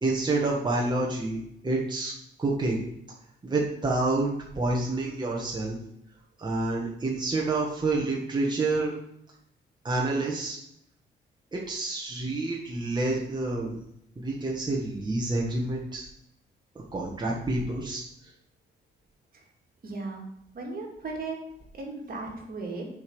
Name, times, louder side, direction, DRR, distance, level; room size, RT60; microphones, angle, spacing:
voice 1, 0.0-2.1 2.4-2.8 3.4-4.3 4.6-5.8 6.4-8.9 9.8-10.6 11.5-13.8 14.2-16.0 16.9-18.0, right 2 dB, 20° right, -3 dB, 1.6 m, -28 dB
voice 2, 19.8-20.3 20.5-21.4 21.7-22.8, right 3 dB, 50° right, 1 dB, 2.4 m, -36 dB
6.8 x 5.3 x 6.2 m, 0.76 s
cardioid pair, 90°, 20 cm